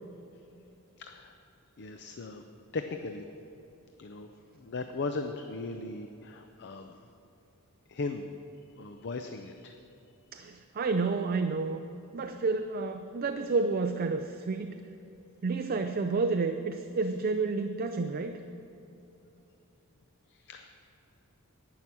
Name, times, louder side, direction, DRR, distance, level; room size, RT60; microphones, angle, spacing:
voice 1, 1.0-1.3 1.8-2.4 2.7-3.2 4.0-7.0 7.9-8.3 8.8-9.8 20.3-20.7, left 3 dB, 50° left, 6 dB, 0.6 m, -38 dB
voice 2, 10.3-11.8 12.1-14.8 15.4-18.4, right 4 dB, 45° right, 7 dB, 0.4 m, -30 dB
11.0 x 9.7 x 6.1 m, 2.9 s
head